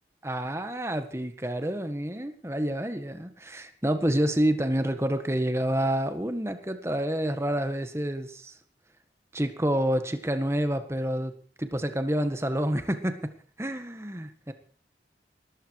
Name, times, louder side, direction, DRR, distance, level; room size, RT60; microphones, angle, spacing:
voice 1, 0.2-8.5 9.3-11.3 11.6-13.3 13.6-14.5, right 1 dB, 15° right, 8 dB, 1.7 m, -28 dB
20.0 x 14.5 x 4.8 m, 0.44 s
head